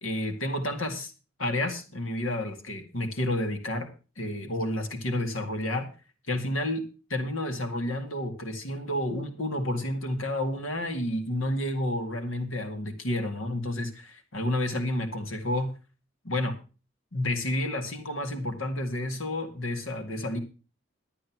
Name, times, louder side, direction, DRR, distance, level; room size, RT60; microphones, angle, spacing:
voice 1, 0.0-1.1 1.4-3.9 4.2-5.9 6.3-6.8 7.1-15.7 16.2-16.6 17.1-20.4, left 1 dB, 85° left, 6 dB, 2.1 m, -30 dB
12.5 x 8.4 x 5.9 m, 0.34 s
head